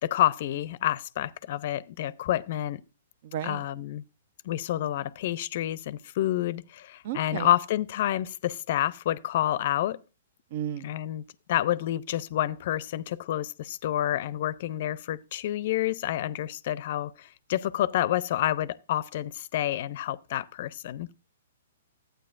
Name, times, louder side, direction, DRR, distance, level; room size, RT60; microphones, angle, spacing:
voice 1, 0.0-2.8 3.4-4.0 4.4-10.0 10.8-11.2 11.5-21.1, left 13 dB, 55° left, 0.5 m, -29 dB
voice 2, 3.2-3.6 7.0-7.5 10.5-10.9, right 10 dB, 55° right, 0.5 m, -33 dB
12.5 x 9.0 x 2.5 m
hypercardioid pair, 125°, 0 cm